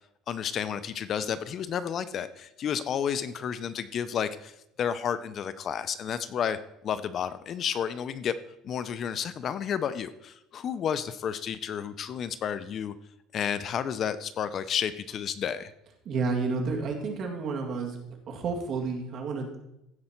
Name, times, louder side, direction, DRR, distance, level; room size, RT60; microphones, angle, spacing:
voice 1, 0.3-6.6 6.8-8.4 8.6-12.9 13.3-15.7, left 8 dB, 40° left, 14 dB, 0.4 m, -31 dB
voice 2, 16.1-18.0 18.3-19.7, right 4 dB, 40° right, 2 dB, 2.1 m, -30 dB
15.5 x 5.3 x 4.4 m, 0.84 s
cardioid pair, 150°, 0 cm